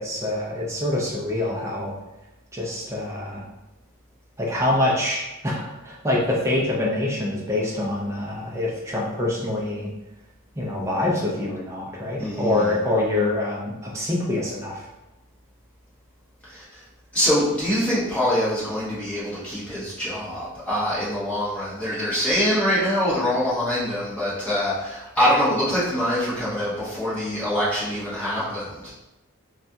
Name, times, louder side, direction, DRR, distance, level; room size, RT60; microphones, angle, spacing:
voice 1, 0.0-1.9 2.5-3.4 4.4-9.9 10.6-14.8, left 1 dB, 15° right, -4 dB, 0.5 m, -25 dB
voice 2, 12.2-12.7 16.5-16.6 17.1-28.9, equal, 5° left, -10 dB, 1.1 m, -24 dB
3.2 x 2.3 x 2.7 m, 0.97 s
head